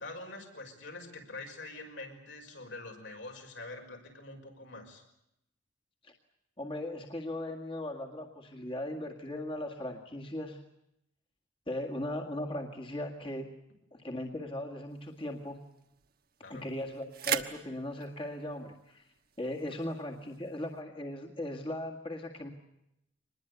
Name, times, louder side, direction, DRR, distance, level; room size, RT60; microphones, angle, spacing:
voice 1, 0.0-5.0 16.4-16.7, left 2 dB, 80° left, 2 dB, 5.7 m, -45 dB
voice 2, 6.6-10.6 11.7-13.5 13.9-15.6 16.5-19.0 19.4-22.5, left 1 dB, 30° left, 1 dB, 2.0 m, -38 dB
sound 1, 14.9-20.8, right 8 dB, 50° right, 1.2 m, -42 dB
25.0 x 20.5 x 8.2 m, 0.83 s
head